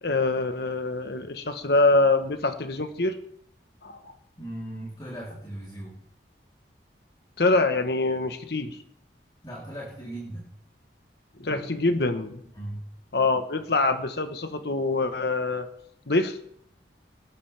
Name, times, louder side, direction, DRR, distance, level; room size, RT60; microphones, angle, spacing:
voice 1, 0.0-3.2 3.8-4.1 7.4-8.8 11.4-12.4 13.1-15.7 16.1-16.4, left 2 dB, 65° left, 8 dB, 1.2 m, -25 dB
voice 2, 4.4-6.0 9.4-10.5 12.5-12.9, right 1 dB, 25° left, -7 dB, 3.5 m, -38 dB
20.5 x 11.5 x 3.5 m, 0.70 s
head